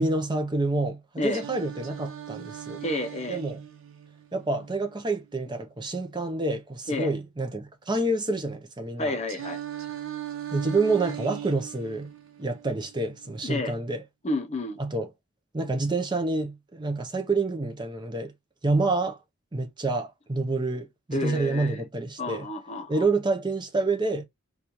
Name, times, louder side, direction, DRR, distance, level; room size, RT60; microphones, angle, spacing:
voice 1, 0.0-2.8 3.3-3.6 4.3-9.2 10.5-12.1 12.4-14.0 14.8-15.1 15.5-18.3 18.6-19.2 19.5-22.5 22.9-24.2, right 2 dB, 20° right, 0.6 m, -28 dB
Singing, 1.3-5.3 9.3-13.3, right 11 dB, 70° right, 0.6 m, -39 dB
voice 2, 2.8-3.4 6.9-7.1 9.0-9.6 13.4-13.7 14.2-14.8 21.1-21.8 22.2-23.1, left 2 dB, 30° left, 0.6 m, -30 dB
4.1 x 2.3 x 2.9 m
head